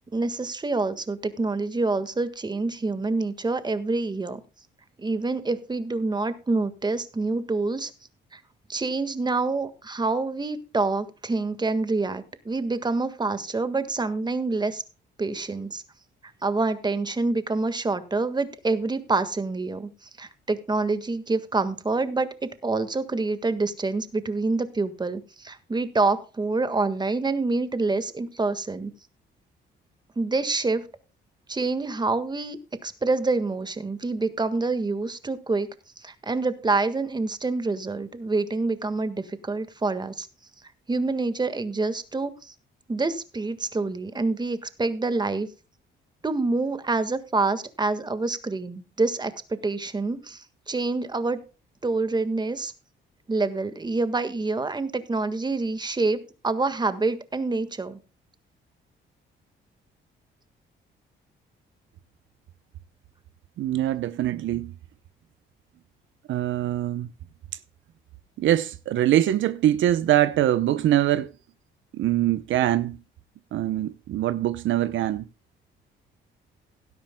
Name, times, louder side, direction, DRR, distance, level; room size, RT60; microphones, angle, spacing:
voice 1, 0.1-4.4 5.0-7.9 8.3-8.4 8.7-14.8 15.2-15.8 16.4-19.9 20.2-22.3 22.6-28.9 30.2-30.9 31.5-35.7 36.0-40.3 40.9-42.5 42.9-45.5 46.2-51.4 51.8-52.7 53.3-58.0, right 3 dB, 20° right, 1.6 m, -27 dB
voice 2, 63.6-64.7 66.3-67.1 68.4-71.3 71.9-73.0 73.5-75.3, right 13 dB, 75° right, 0.7 m, -23 dB
17.0 x 12.0 x 2.2 m
cardioid pair, 90°, 20 cm